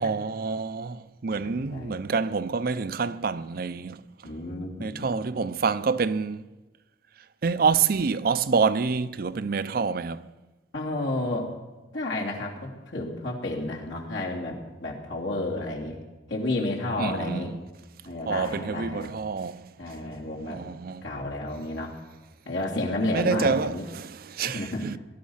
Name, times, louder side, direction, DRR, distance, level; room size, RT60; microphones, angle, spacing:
voice 1, 0.0-4.0 4.8-6.5 7.4-10.3 17.0-17.5 18.3-19.7 20.5-21.0 23.1-25.0, right 5 dB, 55° right, 0.5 m, -27 dB
voice 2, 1.3-2.0 4.2-5.1 10.7-11.5 11.9-16.0 16.3-17.5 18.0-19.1 19.8-20.6 21.0-21.9 22.4-23.8 24.4-24.9, left 2 dB, 85° left, 3.0 m, -31 dB
19.0 x 12.0 x 5.6 m
head